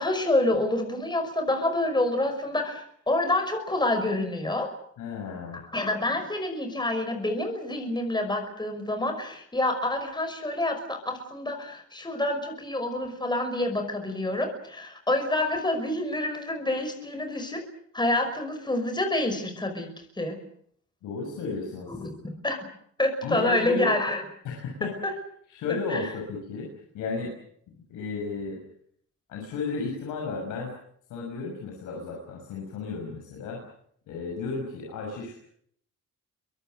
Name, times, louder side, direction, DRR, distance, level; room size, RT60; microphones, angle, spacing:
voice 1, 0.0-4.7 5.7-17.6 17.9-19.9 20.2-20.4 21.9-22.7 23.0-24.2 25.0-25.1 25.9-26.1, left 2 dB, 15° left, 6 dB, 5.6 m, -27 dB
voice 2, 5.0-5.6 21.0-22.2 23.2-23.9 24.4-24.9 25.5-26.7 26.9-27.3 27.8-28.6 29.3-30.7 31.1-33.6 34.1-35.3, left 4 dB, 85° left, 0 dB, 6.3 m, -33 dB
27.0 x 24.0 x 6.5 m, 0.66 s
cardioid pair, 90°, 30 cm